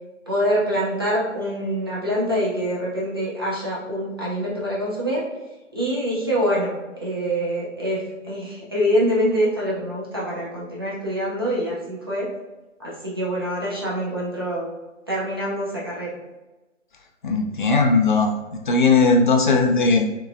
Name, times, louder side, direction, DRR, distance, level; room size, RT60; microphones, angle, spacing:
voice 1, 0.3-5.2 5.7-12.3 12.8-14.7 15.1-16.2, equal, 20° right, -7 dB, 0.4 m, -25 dB
voice 2, 17.2-18.3 18.7-20.1, left 3 dB, 40° left, 2 dB, 0.5 m, -18 dB
3.0 x 2.9 x 2.4 m, 1.1 s
figure-of-eight pair, 135°, 38 cm